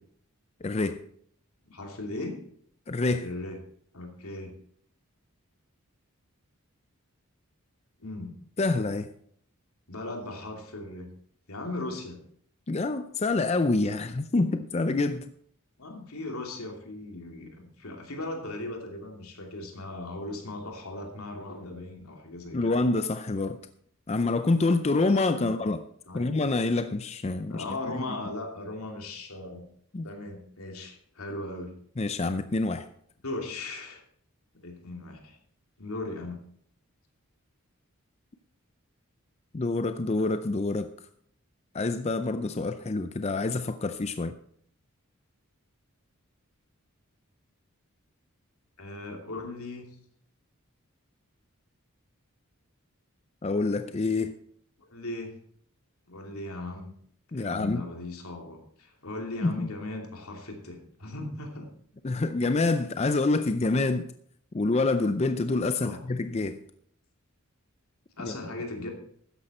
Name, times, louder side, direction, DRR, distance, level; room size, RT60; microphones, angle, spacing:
voice 1, 0.6-1.0 2.9-3.3 8.6-9.1 12.7-15.3 22.5-23.6 24.1-25.8 26.1-28.0 29.9-30.1 32.0-32.9 39.5-40.9 41.7-44.4 53.4-54.3 57.3-57.8 59.4-59.7 62.0-64.1 64.5-66.6 68.2-68.4, left 3 dB, 30° left, 0.5 m, -27 dB
voice 2, 1.6-2.4 3.2-3.6 3.9-4.5 8.0-8.4 9.9-11.1 11.5-12.2 15.8-22.8 25.4-25.6 26.1-26.3 27.5-29.7 30.0-31.8 33.2-34.0 34.6-35.4 35.8-36.4 48.8-49.9 54.9-55.3 56.1-57.0 57.3-61.7 65.8-66.0 68.2-68.9, left 2 dB, 80° left, 2.8 m, -38 dB
13.0 x 9.9 x 4.3 m
head